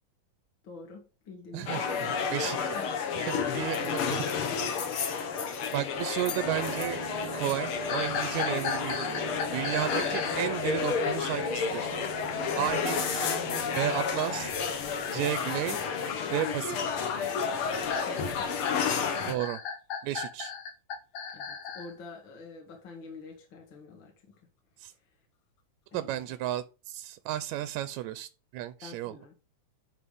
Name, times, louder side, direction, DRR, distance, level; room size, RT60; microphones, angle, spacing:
voice 1, 0.6-2.4 2.7-2.9 3.1-4.4 5.3-5.5 12.6-12.7 18.0-18.6 21.3-24.3 25.9-26.3 28.8-29.3, left 4 dB, 40° left, 2.2 m, -47 dB
voice 2, 1.5-2.8 3.2-4.2 4.9-5.1 5.7-7.0 7.3-11.9 12.6-13.2 13.7-14.5 15.1-15.8 16.3-16.8 19.3-19.6 20.0-20.5 24.8-24.9 25.9-29.3, right 14 dB, 80° right, 1.8 m, -33 dB
sound 1, 1.7-19.3, left 6 dB, 60° left, 1.5 m, -31 dB
sound 2, 6.4-14.5, right 6 dB, 60° right, 1.3 m, -43 dB
sound 3, 7.9-10.5 15.3-21.9, left 6 dB, 75° left, 2.6 m, -36 dB
11.0 x 3.8 x 5.1 m
omnidirectional pair, 3.6 m